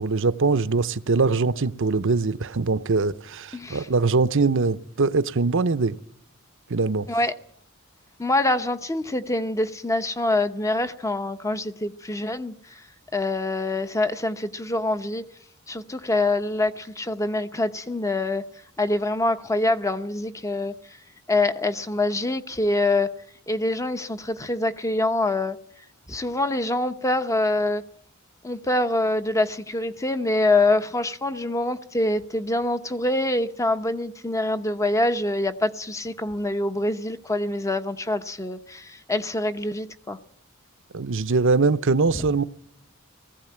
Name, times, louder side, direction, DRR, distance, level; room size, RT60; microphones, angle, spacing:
voice 1, 0.0-6.0 6.7-7.1 40.9-42.4, right 4 dB, 60° right, 0.8 m, -22 dB
voice 2, 3.5-3.9 7.1-7.3 8.2-12.5 13.1-15.2 15.7-18.4 18.8-20.7 21.3-23.1 23.5-25.6 26.1-27.8 28.4-40.2, left 2 dB, 15° left, 0.9 m, -25 dB
19.0 x 15.5 x 8.7 m
head